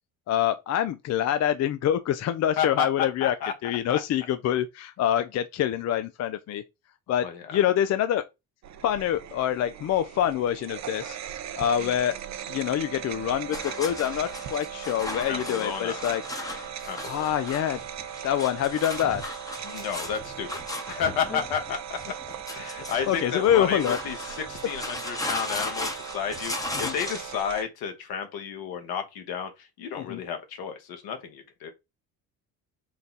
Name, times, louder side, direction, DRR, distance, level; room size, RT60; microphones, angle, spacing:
voice 1, 0.3-3.4 3.6-6.6 7.1-8.2 8.8-11.2 11.6-12.1 12.5-16.2 17.1-17.8 18.2-19.2 23.1-24.0 26.7-26.9 30.0-30.2, left 10 dB, 45° left, 0.4 m, -26 dB
voice 2, 3.2-3.5 3.9-4.0 7.2-7.6 11.8-11.9 15.3-16.0 16.8-17.3 19.6-20.5 20.9-22.0 22.5-31.7, left 7 dB, 70° left, 1.3 m, -32 dB
sound 1, 8.6-27.6, right 9 dB, 45° right, 0.6 m, -39 dB
sound 2, 13.5-27.4, left 2 dB, 10° left, 0.8 m, -37 dB
4.0 x 2.3 x 3.9 m
supercardioid pair, 80°, 39 cm